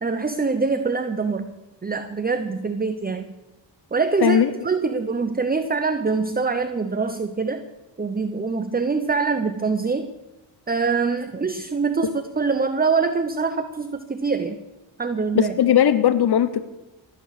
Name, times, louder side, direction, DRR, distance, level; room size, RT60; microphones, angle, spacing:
voice 1, 0.0-1.5 1.8-3.3 3.9-7.6 8.0-10.1 10.7-14.6 15.0-15.5, right 4 dB, 20° right, 9 dB, 0.9 m, -24 dB
voice 2, 15.3-16.7, left 9 dB, 60° left, 12 dB, 0.8 m, -18 dB
17.0 x 9.0 x 6.7 m, 1.1 s
cardioid pair, 70°, 44 cm